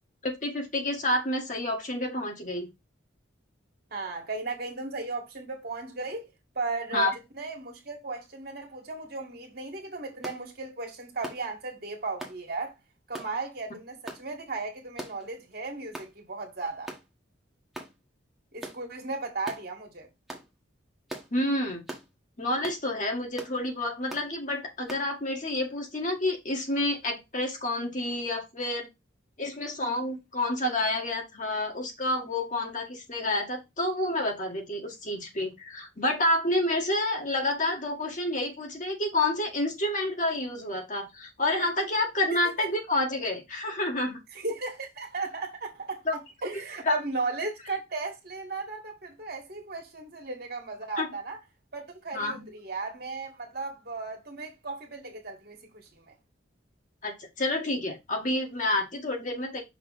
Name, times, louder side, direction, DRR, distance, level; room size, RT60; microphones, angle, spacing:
voice 1, 0.2-2.7 6.9-7.1 21.3-21.8 22.4-28.9 29.4-44.2 46.1-46.2 46.8-47.0 51.0-51.1 52.1-52.5 57.0-59.6, left 1 dB, 40° left, 1.7 m, -29 dB
voice 2, 3.9-6.3 6.5-7.1 7.3-12.7 13.1-16.9 18.5-20.1 42.3-42.4 44.3-51.4 51.7-56.1, right 3 dB, 50° right, 1.8 m, -36 dB
sound 1, 10.2-10.4 11.2-11.4 12.2-12.4 13.1-13.3 14.1-14.2 15.0-15.2 15.9-16.1 16.9-17.1 17.7-17.9 18.6-18.8 19.4-19.6 20.3-20.5 21.1-21.3 21.9-22.1 22.6-22.8 23.4-23.6 24.1-24.3 24.9-25.1, right 1 dB, ahead, 1.3 m, -40 dB
6.0 x 3.3 x 5.0 m
head